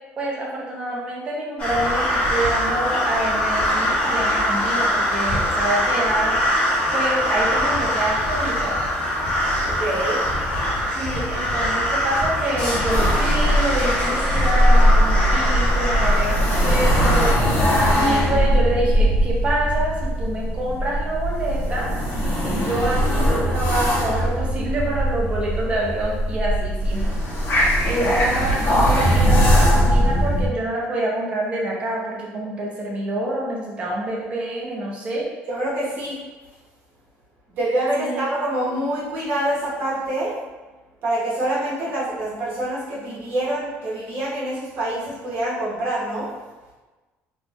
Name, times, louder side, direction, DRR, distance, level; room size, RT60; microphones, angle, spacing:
voice 1, 0.2-6.4 6.9-8.8 10.9-17.4 17.9-21.9 22.4-27.2 27.8-35.3 38.0-38.2, right 1 dB, 25° right, -3 dB, 0.7 m, -26 dB
sound 1, 1.6-17.3, equal, 35° left, 1.1 m, -23 dB
voice 2, 9.6-10.2 35.5-36.2 37.5-40.3 41.0-46.3, right 1 dB, 50° right, -7 dB, 1.1 m, -26 dB
sound 2, 12.9-30.5, equal, 55° left, 1.0 m, -20 dB
3.1 x 2.4 x 3.4 m, 1.2 s
cardioid pair, 170°, 4 cm